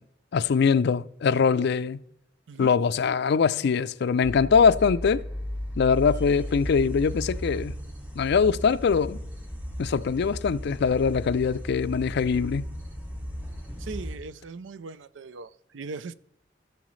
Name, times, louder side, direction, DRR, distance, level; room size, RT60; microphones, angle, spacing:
voice 1, 0.3-2.0 2.6-5.2 5.8-7.7 8.2-9.2 9.8-12.7, left 6 dB, 60° left, 0.4 m, -22 dB
sound 1, 4.2-14.2, equal, 10° right, 2.0 m, -35 dB
voice 2, 13.8-16.1, right 4 dB, 75° right, 0.5 m, -39 dB
16.0 x 7.0 x 3.2 m
head